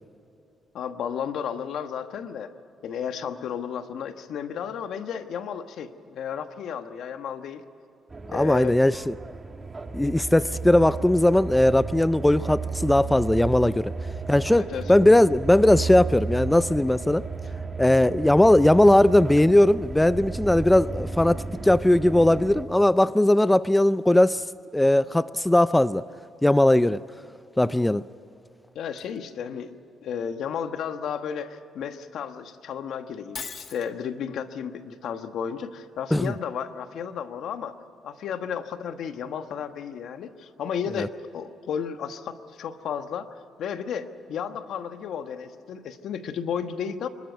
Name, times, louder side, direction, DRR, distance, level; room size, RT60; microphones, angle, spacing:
voice 1, 0.7-2.5 2.8-7.6 8.3-8.8 14.5-14.9 28.7-29.7 30.0-37.7 38.0-47.1, left 7 dB, 75° left, 9 dB, 1.3 m, -33 dB
sound 1, 8.1-22.6, right 4 dB, 30° right, 1.3 m, -33 dB
voice 2, 8.3-9.1 9.9-13.9 14.3-17.2 17.8-24.4 24.7-26.0 26.4-27.0 27.6-28.0 36.1-36.3 41.0-41.1, left 1 dB, 10° left, 16 dB, 0.4 m, -19 dB
Shatter, 33.3-33.9, left 6 dB, 50° left, 1.6 m, -37 dB
25.5 x 13.5 x 9.3 m, 2.8 s
cardioid pair, 90°, 0 cm